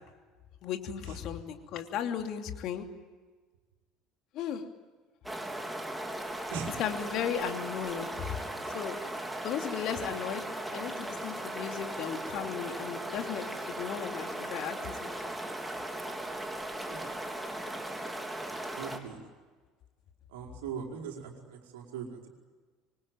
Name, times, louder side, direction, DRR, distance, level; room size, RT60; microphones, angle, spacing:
voice 1, 0.6-2.8 4.3-4.6 6.8-8.4 8.7-8.9 9.4-10.4 10.7-15.3, left 9 dB, 55° left, 5 dB, 2.9 m, -36 dB
sound 1, 5.2-19.0, right 1 dB, 5° right, 3.9 m, -38 dB
voice 2, 18.7-19.2 20.3-22.3, right 7 dB, 75° right, 1 dB, 5.0 m, -40 dB
26.5 x 23.5 x 9.2 m, 1.4 s
hypercardioid pair, 65°, 0 cm